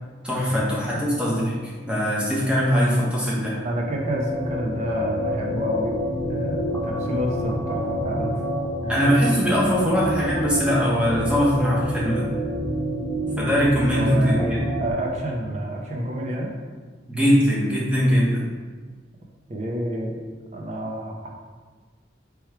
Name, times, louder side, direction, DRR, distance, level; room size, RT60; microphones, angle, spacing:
voice 1, 0.2-1.5 1.8-3.6 8.9-12.3 13.4-14.4 17.1-18.5, equal, 5° right, -6 dB, 0.9 m, -21 dB
sound 1, 3.5-14.9, equal, 10° left, 0.4 m, -28 dB
voice 2, 3.6-5.9 6.3-8.4 8.8-9.0 13.9-16.5 19.5-20.1 20.5-21.3, right 1 dB, 35° right, -1 dB, 0.6 m, -29 dB
3.5 x 3.1 x 4.5 m, 1.4 s
head